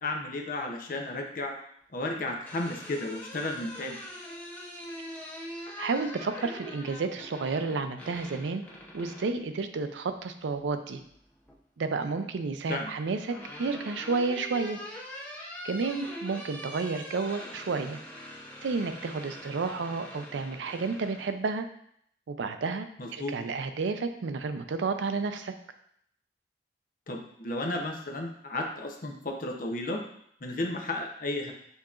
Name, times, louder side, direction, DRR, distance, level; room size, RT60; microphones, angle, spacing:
voice 1, 0.0-1.5 1.9-4.0 12.7-12.9 23.0-23.4 27.1-30.0 30.4-31.5, left 2 dB, 50° left, 1 dB, 0.6 m, -33 dB
sound 1, 2.2-9.4 10.9-11.6 12.8-21.3, left 1 dB, 10° left, 0.6 m, -43 dB
voice 2, 5.8-8.6 8.9-11.0 11.8-14.8 15.6-18.0 18.6-21.6 22.3-25.5, right 4 dB, 85° right, 8 dB, 0.4 m, -31 dB
7.0 x 2.8 x 2.4 m, 0.69 s
head